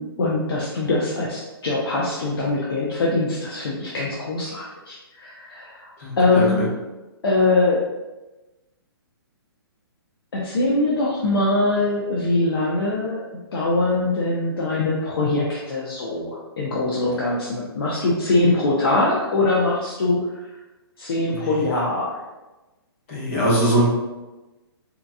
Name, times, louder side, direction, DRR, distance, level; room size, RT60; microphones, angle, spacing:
voice 1, 0.0-5.9 6.2-6.6 7.2-7.8 10.3-13.2 13.5-20.5 21.0-22.3, left 2 dB, 65° left, -5 dB, 0.7 m, -22 dB
voice 2, 6.0-6.6 23.1-23.9, right 1 dB, 35° left, -5 dB, 1.2 m, -21 dB
3.7 x 2.9 x 2.3 m, 1.1 s
hypercardioid pair, 160°, 13 cm